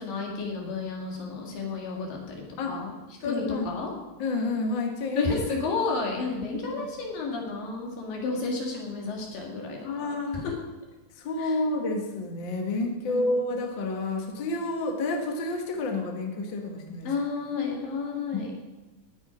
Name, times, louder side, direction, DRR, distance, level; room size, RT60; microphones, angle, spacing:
voice 1, 0.0-2.4 2.7-2.9 3.2-3.9 5.2-10.6 11.4-11.6 13.1-13.2 17.1-18.5, left 4 dB, 85° left, -1 dB, 3.8 m, -31 dB
voice 2, 3.2-3.7 4.2-5.4 6.6-6.9 9.8-10.4 11.2-17.1 18.3-18.4, left 2 dB, 45° left, 2 dB, 1.6 m, -29 dB
18.0 x 6.4 x 5.0 m, 1.1 s
omnidirectional pair, 3.9 m